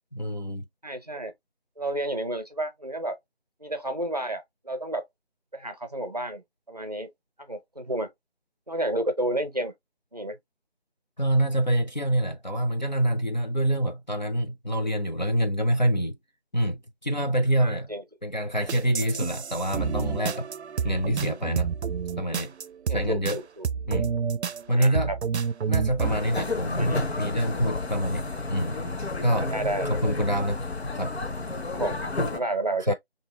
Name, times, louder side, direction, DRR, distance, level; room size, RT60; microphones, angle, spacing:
voice 1, 0.1-0.6 11.2-16.2 16.5-17.9 18.2-20.5 20.8-21.7 22.2-22.5 22.9-23.4 23.9-24.1 24.7-25.1 25.7-28.8 29.2-29.6 29.9-30.6 31.0-31.2 32.9-33.0, equal, 45° left, 0.4 m, -26 dB
voice 2, 0.8-1.3 1.8-3.2 3.6-5.1 5.5-7.1 7.4-8.1 8.7-9.7 10.1-10.4 17.6-18.0 22.9-23.7 24.7-25.2 26.7-27.1 29.5-29.9 31.7-32.9, right 1 dB, 40° right, 0.6 m, -31 dB
sound 1, 18.7-23.4 23.6-26.2, right 7 dB, 85° right, 0.5 m, -29 dB
sound 2, 26.0-32.4, left 2 dB, 75° left, 0.9 m, -31 dB
2.8 x 2.8 x 3.6 m
figure-of-eight pair, 170°, 32 cm